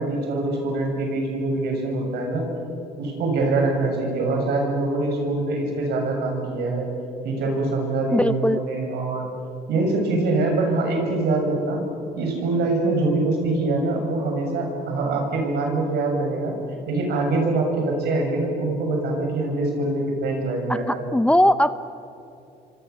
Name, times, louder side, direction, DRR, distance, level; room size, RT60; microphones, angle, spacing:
voice 1, 0.0-2.4 2.9-6.9 7.2-9.3 9.7-11.8 12.2-16.5 16.9-21.1, right 2 dB, 75° right, 1 dB, 7.4 m, -24 dB
voice 2, 8.1-8.6 21.1-21.7, left 1 dB, 5° left, 12 dB, 0.7 m, -18 dB
27.5 x 24.5 x 7.2 m, 2.6 s
cardioid pair, 110°, 17 cm